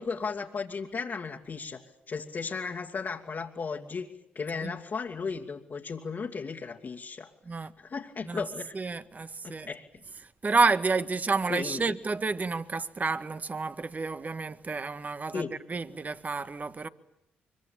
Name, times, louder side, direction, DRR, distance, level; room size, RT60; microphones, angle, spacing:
voice 1, 0.0-4.1 4.3-7.3 7.8-8.7 9.4-9.8 11.5-11.8 15.3-15.5, left 5 dB, 50° left, 2.4 m, -35 dB
voice 2, 8.7-9.7 10.4-16.9, right 4 dB, 35° right, 1.7 m, -30 dB
24.5 x 23.5 x 8.9 m
hypercardioid pair, 50°, 5 cm